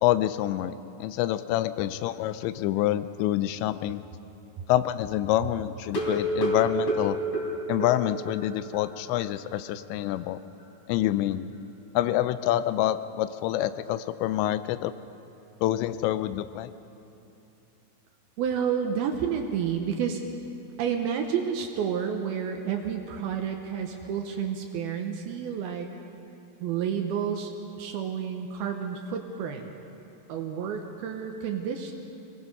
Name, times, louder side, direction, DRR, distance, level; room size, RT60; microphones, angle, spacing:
voice 1, 0.0-4.0 4.7-7.2 7.7-10.4 10.9-11.5 11.9-14.9 15.6-16.7, left 13 dB, 85° left, 13 dB, 2.8 m, -27 dB
sound 1, 5.8-8.4 8.7-8.8 9.2-9.3 9.7-9.8, equal, 45° left, 4.3 m, -28 dB
voice 2, 18.4-20.2 20.8-25.9 26.6-29.7 30.3-31.9, right 7 dB, 75° right, 4 dB, 2.4 m, -30 dB
25.5 x 19.5 x 5.4 m, 2.8 s
omnidirectional pair, 5.2 m